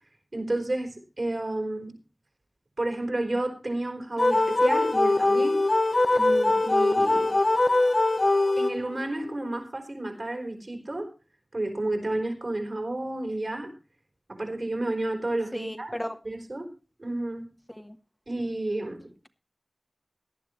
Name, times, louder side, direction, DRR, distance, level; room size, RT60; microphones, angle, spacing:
voice 1, 0.3-2.0 2.8-5.6 6.1-7.3 8.6-11.1 11.5-13.7 14.3-16.0 16.2-16.7 17.0-17.5 18.3-19.1, right 2 dB, 70° right, 2 dB, 4.4 m, -31 dB
sound 1, 4.2-9.1, left 2 dB, 75° left, 0.7 m, -22 dB
voice 2, 15.5-16.2 17.8-18.0, equal, 15° left, 5 dB, 1.3 m, -35 dB
18.0 x 11.5 x 3.1 m, 0.33 s
wide cardioid pair, 45°, 0 cm